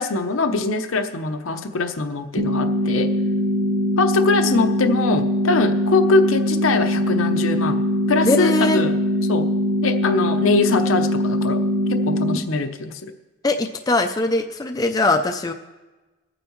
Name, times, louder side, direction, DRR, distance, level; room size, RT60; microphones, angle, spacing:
voice 1, 0.0-3.1 4.0-7.8 8.1-8.9 9.3-9.5 9.8-11.6 11.9-13.1, left 3 dB, 80° left, 8 dB, 0.7 m, -22 dB
sound 1, 2.4-12.4, left 1 dB, 90° right, 1.0 m, -22 dB
voice 2, 8.2-8.8 13.4-15.5, left 2 dB, 20° left, 5 dB, 0.4 m, -21 dB
20.5 x 9.0 x 3.1 m, 1.2 s
head